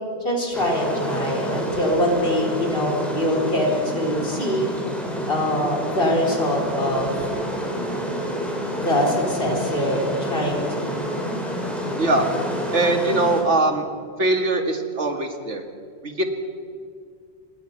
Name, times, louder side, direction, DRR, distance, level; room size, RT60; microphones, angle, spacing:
voice 1, 0.2-4.6 5.3-7.1 8.8-10.9, left 1 dB, 55° left, 1 dB, 4.4 m, -23 dB
sound 1, 0.5-13.4, equal, ahead, 4.4 m, -28 dB
voice 2, 12.7-13.8 14.2-15.6 16.0-16.2, right 2 dB, 90° right, 5 dB, 2.4 m, -21 dB
26.5 x 20.0 x 5.9 m, 2.2 s
omnidirectional pair, 1.2 m